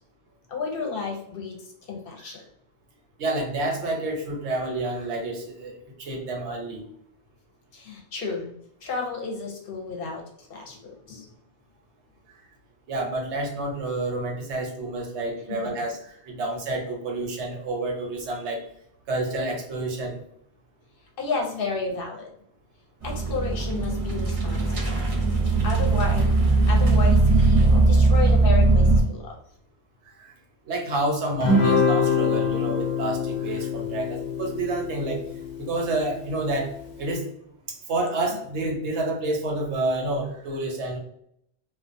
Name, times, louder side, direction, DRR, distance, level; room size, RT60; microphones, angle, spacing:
voice 1, 0.5-2.4 7.7-8.5 8.8-11.3 21.2-22.3 23.0-25.0 25.6-26.4 26.7-29.3, left 4 dB, 65° left, 1 dB, 0.7 m, -32 dB
voice 2, 3.2-6.8 12.9-18.7 19.1-20.2 30.2-30.3 30.7-35.2 35.6-36.7 37.0-37.3 37.9-41.0, right 2 dB, 85° right, 1 dB, 1.0 m, -29 dB
sound 1, 23.0-29.0, right 3 dB, 45° right, 0.5 m, -19 dB
Guitar, 31.4-36.0, left 4 dB, 20° left, 0.7 m, -24 dB
2.3 x 2.2 x 2.5 m, 0.69 s
omnidirectional pair, 1.1 m